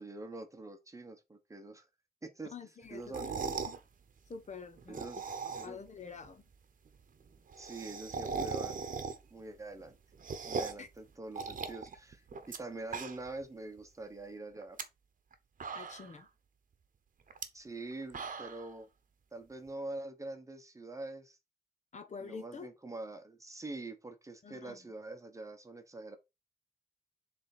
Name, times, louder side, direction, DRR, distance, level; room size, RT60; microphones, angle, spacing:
voice 1, 0.0-1.9 2.2-2.5 2.9-3.3 4.9-5.2 5.6-5.8 7.6-8.8 9.3-10.0 10.4-14.8 17.5-18.9 19.3-21.4 22.2-26.2, right 2 dB, 20° right, 1.0 m, -45 dB
voice 2, 2.4-3.8 4.3-5.1 5.4-6.4 10.8-10.9 15.7-16.3 21.9-22.7 24.4-24.9, left 5 dB, 50° left, 0.9 m, -47 dB
sound 1, 3.0-3.8 4.8-5.9 6.2-6.3 6.5-6.6 6.8-6.9 7.2-9.4 9.8-10.9 11.3-12.6 12.8-13.4 13.8-13.9 14.6-14.8 15.3-15.4 15.6-16.2 17.3-17.4 17.9-18.7, right 5 dB, 55° right, 0.9 m, -39 dB
7.4 x 3.5 x 4.3 m
wide cardioid pair, 160°, 16 cm